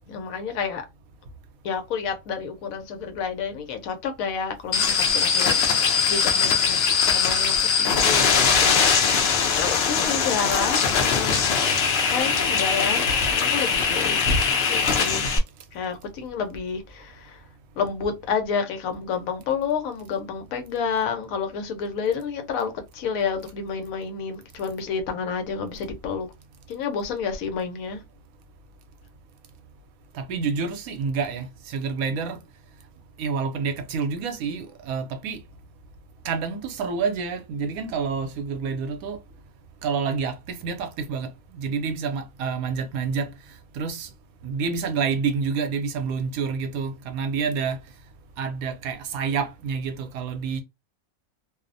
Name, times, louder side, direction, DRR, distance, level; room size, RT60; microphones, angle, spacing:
voice 1, 0.1-0.8 1.6-6.8 7.1-8.9 9.2-11.4 12.1-15.3 15.7-17.4 17.8-26.3 26.7-28.0, left 5 dB, 80° left, 1.0 m, -29 dB
sound 1, 4.7-15.4, left 6 dB, 60° left, 0.7 m, -21 dB
voice 2, 30.1-32.4 33.2-35.4 36.2-39.2 39.8-43.3 43.7-44.1 44.4-47.8 48.4-50.6, right 5 dB, 85° right, 1.0 m, -28 dB
2.6 x 2.0 x 2.5 m
omnidirectional pair, 1.5 m